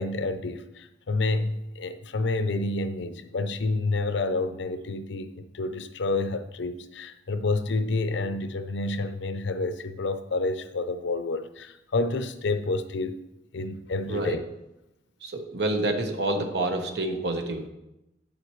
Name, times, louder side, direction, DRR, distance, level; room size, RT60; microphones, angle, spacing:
voice 1, 0.0-13.2 13.5-14.4, left 3 dB, 80° left, 11 dB, 0.6 m, -29 dB
voice 2, 15.2-17.7, right 2 dB, 65° right, 4 dB, 1.1 m, -28 dB
9.6 x 7.3 x 3.2 m, 0.90 s
head